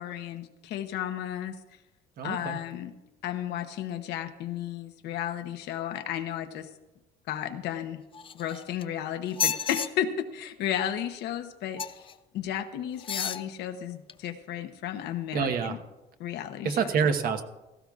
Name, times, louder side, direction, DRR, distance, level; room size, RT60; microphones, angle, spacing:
voice 1, 0.0-1.5 2.2-2.9 3.2-6.7 7.3-8.0 8.3-11.8 12.3-15.8 16.2-16.7, left 10 dB, 80° left, 8 dB, 0.9 m, -33 dB
voice 2, 2.2-2.6 15.3-15.8 16.6-17.4, right 6 dB, 60° right, 7 dB, 1.1 m, -27 dB
sound 1, 8.1-8.8 9.3-9.9 11.8-12.1 13.0-13.4 14.1-14.2, left 7 dB, 30° left, 0.5 m, -31 dB
17.0 x 14.5 x 2.4 m, 1.0 s
cardioid pair, 110°, 17 cm